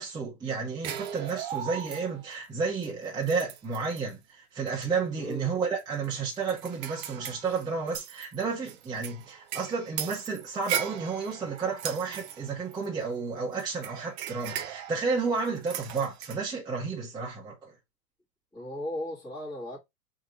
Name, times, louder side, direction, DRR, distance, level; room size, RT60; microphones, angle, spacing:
voice 1, 0.0-17.7, right 5 dB, 10° right, 0.9 m, -32 dB
sound 1, 0.8-2.3 2.8-2.9 3.2-4.1 4.7-4.9 5.2-5.3 5.8-8.2 8.7-13.1 13.6-16.4, right 10 dB, 50° right, 0.8 m, -38 dB
voice 2, 5.2-5.5 18.5-19.8, left 1 dB, 10° left, 1.7 m, -36 dB
Shatter, 7.9-8.5 8.8-9.0 10.0-11.0 11.8-12.9, right 10 dB, 25° right, 0.4 m, -39 dB
3.7 x 2.9 x 3.9 m
hypercardioid pair, 135°, 43 cm